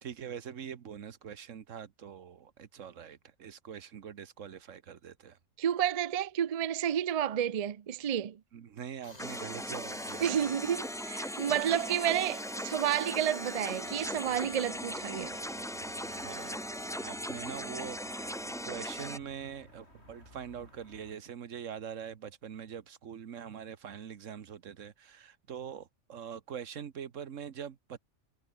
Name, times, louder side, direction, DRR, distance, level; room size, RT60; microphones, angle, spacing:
voice 1, 0.0-5.4 8.5-10.5 11.5-11.6 15.5-28.0, right 8 dB, 85° right, 1.5 m, -44 dB
voice 2, 5.6-8.4 10.2-15.4, right 10 dB, 45° right, 0.5 m, -30 dB
Tools, 9.0-16.5, left 2 dB, 30° left, 2.8 m, -53 dB
sound 1, 9.2-19.2, equal, ahead, 1.9 m, -39 dB
sound 2, 13.8-21.2, left 1 dB, 60° left, 8.1 m, -58 dB
omnidirectional pair, 1.3 m